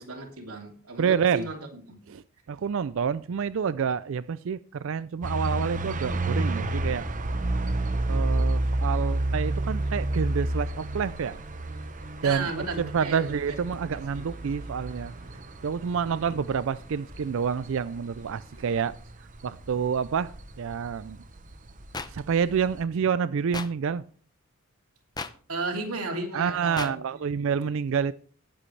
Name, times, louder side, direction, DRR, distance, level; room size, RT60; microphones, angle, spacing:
voice 1, 0.0-2.0 12.2-13.6 14.1-14.5 16.0-16.3 25.5-27.7, right 3 dB, 80° right, 3.0 m, -35 dB
voice 2, 1.0-1.5 2.1-2.2 2.5-7.0 8.1-11.4 12.2-15.1 15.6-18.9 19.4-20.3 20.6-21.2 22.1-24.0 26.3-28.1, right 6 dB, 60° right, 0.4 m, -28 dB
sound 1, 5.2-22.8, right 1 dB, 35° right, 0.9 m, -31 dB
sound 2, 7.9-18.8, equal, 35° left, 4.0 m, -52 dB
sound 3, 21.9-22.1 23.5-23.7 25.2-25.3 26.8-26.9, left 4 dB, 20° left, 0.6 m, -33 dB
19.5 x 7.7 x 3.3 m
head